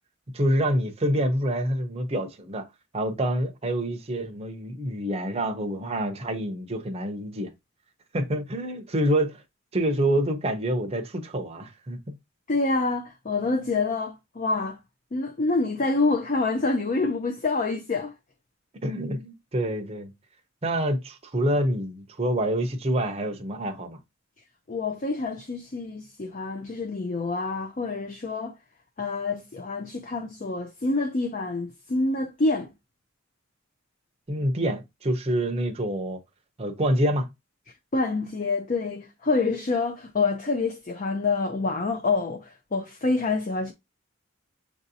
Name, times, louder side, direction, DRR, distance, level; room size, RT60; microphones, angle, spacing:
voice 1, 0.3-2.7 2.9-7.5 8.1-9.4 9.7-12.1 18.8-20.1 20.6-24.0 34.3-36.2 36.6-37.3, right 1 dB, 30° right, 0.6 m, -27 dB
voice 2, 12.5-14.8 15.1-18.1 24.7-28.5 29.0-32.7 37.9-43.7, left 3 dB, 40° left, 0.5 m, -27 dB
7.0 x 2.7 x 2.7 m
head